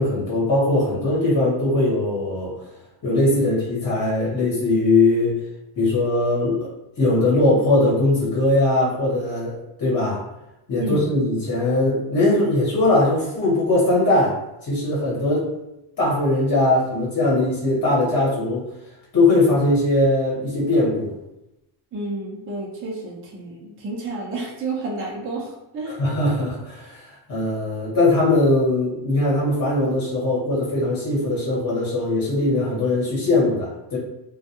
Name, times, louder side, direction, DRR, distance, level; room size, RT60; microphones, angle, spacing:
voice 1, 0.0-2.5 3.0-5.4 5.8-6.7 7.0-10.2 10.7-15.5 16.0-18.7 19.1-21.1 25.9-34.0, left 2 dB, 40° left, -7 dB, 1.0 m, -20 dB
voice 2, 10.8-11.1 21.9-26.0, right 2 dB, 30° right, -3 dB, 0.5 m, -30 dB
2.2 x 2.2 x 2.8 m, 0.90 s
cardioid pair, 130°, 47 cm